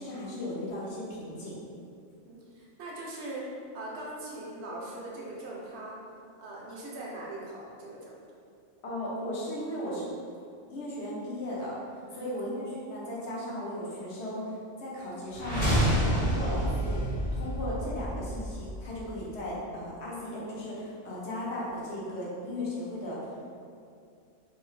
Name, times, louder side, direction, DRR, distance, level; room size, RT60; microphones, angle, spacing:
voice 1, 0.0-1.6 8.8-10.1 10.7-11.7 12.1-23.3, left 1 dB, 60° left, -6 dB, 0.9 m, -36 dB
voice 2, 2.2-3.5 3.7-6.0 6.4-8.2 12.0-12.4 17.2-17.4, right 2 dB, 65° right, -4 dB, 0.8 m, -41 dB
sound 1, 15.3-19.3, equal, 35° left, 0.8 m, -29 dB
2.7 x 2.3 x 3.1 m, 2.4 s
omnidirectional pair, 1.4 m